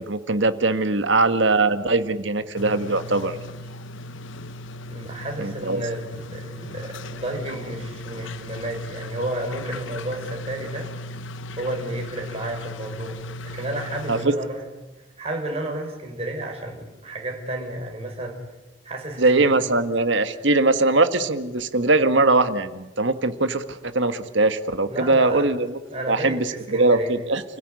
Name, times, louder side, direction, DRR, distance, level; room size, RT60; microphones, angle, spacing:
voice 1, 0.0-3.4 5.4-5.8 14.1-14.3 19.2-25.8 26.1-27.4, right 2 dB, 65° right, 10 dB, 1.7 m, -21 dB
sound 1, 2.5-14.3, left 1 dB, 75° left, 0.8 m, -37 dB
voice 2, 4.9-10.9 11.6-14.7 15.2-18.4 18.8-19.3 24.9-25.5 25.9-27.1, right 1 dB, 30° right, 1 dB, 5.8 m, -32 dB
30.0 x 16.5 x 9.7 m, 1.1 s
head